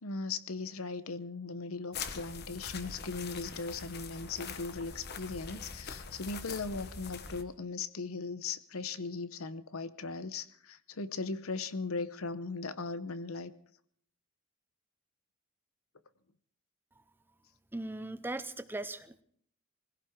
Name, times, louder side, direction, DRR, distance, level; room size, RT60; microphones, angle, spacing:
voice 1, 0.0-13.5, left 4 dB, 80° left, 0.9 m, -38 dB
sound 1, 1.9-7.4, left 5 dB, 50° left, 1.0 m, -43 dB
voice 2, 17.7-19.2, right 2 dB, 10° right, 0.5 m, -39 dB
21.5 x 16.0 x 3.6 m
head